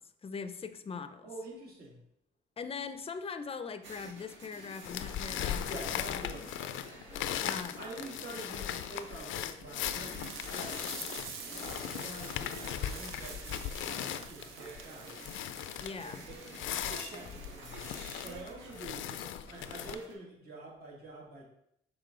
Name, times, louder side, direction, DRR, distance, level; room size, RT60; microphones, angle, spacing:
voice 1, 0.0-1.3 2.6-5.8 6.4-6.5 7.4-7.8 15.8-16.2, left 5 dB, 30° left, 10 dB, 0.5 m, -41 dB
voice 2, 1.2-2.0 5.7-6.6 7.4-10.9 11.6-15.2 15.9-17.9 18.2-21.4, right 2 dB, 55° right, -3 dB, 2.2 m, -47 dB
sound 1, 3.8-20.1, right 2 dB, 70° right, 1.6 m, -51 dB
sound 2, 4.8-19.9, left 10 dB, 85° left, 0.4 m, -38 dB
sound 3, 10.2-18.7, right 6 dB, 85° right, 0.7 m, -47 dB
6.6 x 4.3 x 3.7 m, 0.75 s
cardioid pair, 90°, 20 cm